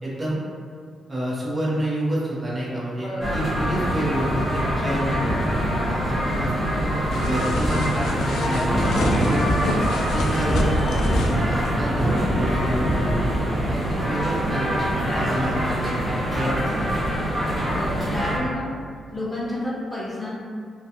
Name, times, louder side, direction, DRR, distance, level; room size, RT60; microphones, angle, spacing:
voice 1, 0.0-0.4 1.1-5.3 5.8-9.9 10.1-16.9, right 1 dB, 30° right, -7 dB, 0.8 m, -29 dB
voice 2, 3.0-3.4 17.7-18.8 19.1-20.3, left 1 dB, 15° left, -7 dB, 0.9 m, -30 dB
sound 1, 3.2-18.4, equal, 5° right, 1.1 m, -24 dB
sound 2, 7.1-11.4, left 1 dB, 80° left, 0.3 m, -29 dB
2.3 x 2.3 x 2.8 m, 2.1 s
cardioid pair, 65°, 0 cm